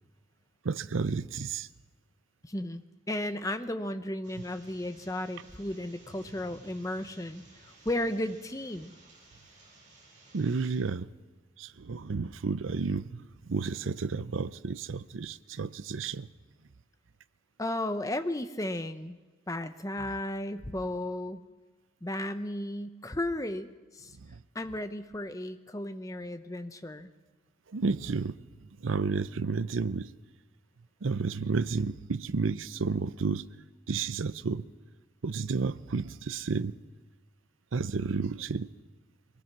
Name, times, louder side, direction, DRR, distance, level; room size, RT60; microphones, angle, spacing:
voice 1, 0.6-1.7 10.3-11.1 11.6-13.2 13.5-16.3 24.2-24.4 27.7-28.4 28.8-30.1 31.0-33.4 33.9-34.7 35.2-36.7 37.7-38.7, right 4 dB, 90° right, 0.6 m, -31 dB
voice 2, 2.4-7.4 7.8-8.9 17.6-19.2 19.5-21.4 22.0-24.2 24.5-27.1, left 1 dB, 15° left, 0.8 m, -34 dB
sound 1, 4.2-10.8, right 1 dB, 40° right, 6.8 m, -55 dB
23.0 x 19.0 x 6.1 m
head